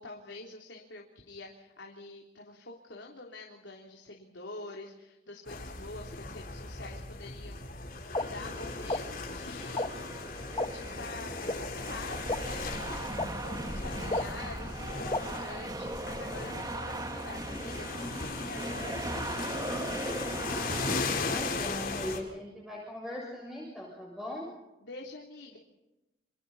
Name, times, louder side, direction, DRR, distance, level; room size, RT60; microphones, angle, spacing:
voice 1, 0.0-7.6 8.1-10.0 10.3-13.1 13.4-19.8 24.8-25.6, left 2 dB, 90° left, -1 dB, 3.4 m, -46 dB
sound 1, 5.5-22.2, left 3 dB, 50° left, 4.1 m, -37 dB
sound 2, 8.1-8.2 8.9-9.0 9.8-9.9 10.6-10.7 11.5-11.6 12.3-12.4 13.2-13.3 14.1-14.2 15.1-15.2, left 2 dB, 25° left, 1.0 m, -29 dB
sound 3, 8.2-21.0, right 2 dB, 20° right, 1.2 m, -39 dB
voice 2, 21.1-24.5, left 1 dB, ahead, -3 dB, 7.0 m, -39 dB
29.5 x 27.0 x 4.2 m, 0.97 s
head